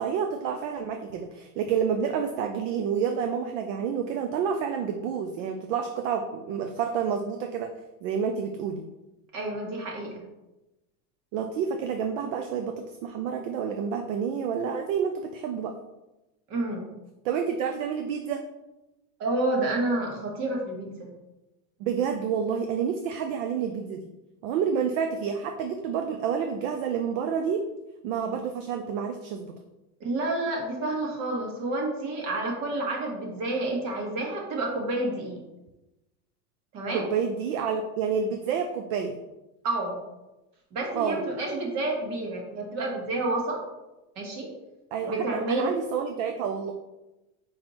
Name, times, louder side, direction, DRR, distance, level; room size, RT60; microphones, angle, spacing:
voice 1, 0.0-7.7 8.0-8.8 11.3-12.8 13.0-15.8 17.2-18.4 21.8-24.0 24.4-27.6 28.0-29.5 36.9-39.2 40.9-41.2 44.9-46.7, right 7 dB, 60° right, 5 dB, 0.7 m, -29 dB
voice 2, 9.3-10.2 16.5-16.9 19.2-21.1 30.0-35.4 36.7-37.1 39.6-40.0 40.7-43.6 44.1-44.5 45.0-45.8, right 2 dB, 40° right, 0 dB, 1.7 m, -29 dB
5.1 x 4.3 x 4.3 m, 1.0 s
supercardioid pair, 150°, 44 cm